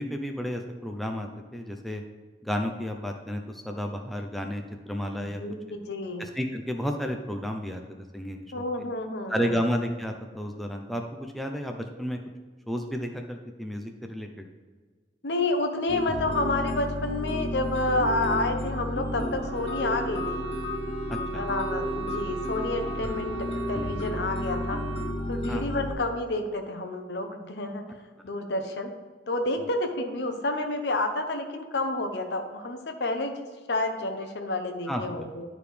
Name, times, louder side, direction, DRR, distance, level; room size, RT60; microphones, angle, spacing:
voice 1, 0.0-2.0 2.4-5.4 5.7-5.8 6.2-7.8 8.1-8.9 9.3-12.2 12.7-14.5 21.1-21.4 25.5-25.8 34.9-35.3, equal, ahead, 3 dB, 0.5 m, -32 dB
voice 2, 5.2-6.2 8.5-9.6 15.2-20.5 21.3-23.3 23.7-24.8 25.3-27.8 28.2-28.9 29.3-33.4 33.7-35.4, left 2 dB, 80° left, 5 dB, 0.9 m, -29 dB
sound 1, 15.9-25.9, left 1 dB, 35° left, 0.9 m, -32 dB
Wind instrument woodwind instrument, 19.4-25.2, right 3 dB, 75° right, 0.8 m, -37 dB
11.0 x 4.8 x 3.4 m, 1.5 s
head